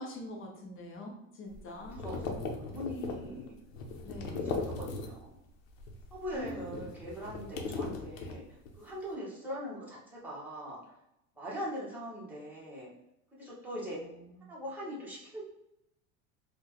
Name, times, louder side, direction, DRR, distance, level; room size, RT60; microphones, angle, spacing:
voice 1, 0.0-2.0 4.0-4.4 6.3-6.7 13.8-14.5, left 1 dB, 30° left, 0 dB, 0.8 m, -45 dB
sound 1, 1.5-5.4 5.7-8.8, left 3 dB, 90° left, 0.8 m, -39 dB
voice 2, 1.8-2.4 2.6-3.5 4.3-5.3 6.1-8.4 8.8-10.8 11.4-12.9 13.3-14.0 14.5-15.4, equal, 5° right, -7 dB, 1.0 m, -41 dB
4.2 x 2.3 x 3.0 m, 0.85 s
supercardioid pair, 155°, 39 cm